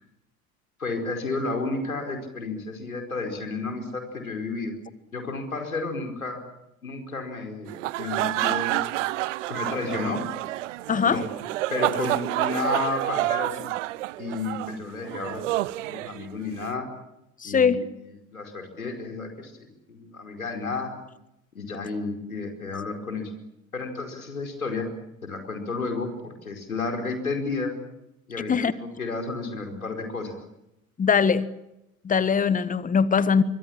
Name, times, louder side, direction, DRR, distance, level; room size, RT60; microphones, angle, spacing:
voice 1, 0.8-4.7 5.1-6.4 6.8-8.9 9.5-10.3 11.1-11.3 11.7-13.7 14.2-15.4 15.9-16.9 17.4-17.8 18.0-20.9 21.5-23.3 23.7-24.9 25.2-27.7 28.3-30.4, left 3 dB, 80° left, 4 dB, 4.9 m, -32 dB
sound 1, 7.7-16.7, right 17 dB, 60° right, 0.9 m, -29 dB
voice 2, 10.9-11.2 17.4-17.9 28.5-28.7 31.0-31.5 32.0-33.4, left 6 dB, 20° left, 16 dB, 1.5 m, -21 dB
25.5 x 24.5 x 7.4 m, 0.88 s
figure-of-eight pair, 75°, 42 cm